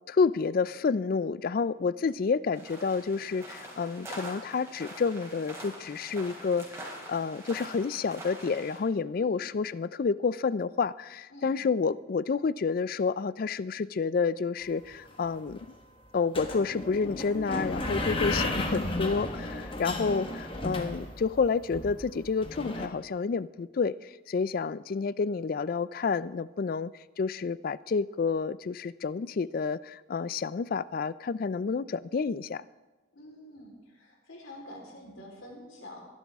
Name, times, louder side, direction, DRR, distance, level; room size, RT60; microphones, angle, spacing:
voice 1, 0.1-15.6 16.1-32.6, left 5 dB, 45° left, 18 dB, 0.3 m, -29 dB
sound 1, 2.5-8.8, right 1 dB, 15° right, 3.4 m, -44 dB
voice 2, 9.1-9.5 11.3-11.5 33.1-36.1, left 1 dB, 80° left, 0 dB, 3.9 m, -47 dB
sound 2, 14.9-15.0 15.2-15.6 16.3-22.9, left 1 dB, 25° left, 1.3 m, -33 dB
22.5 x 11.5 x 3.5 m, 1.2 s
head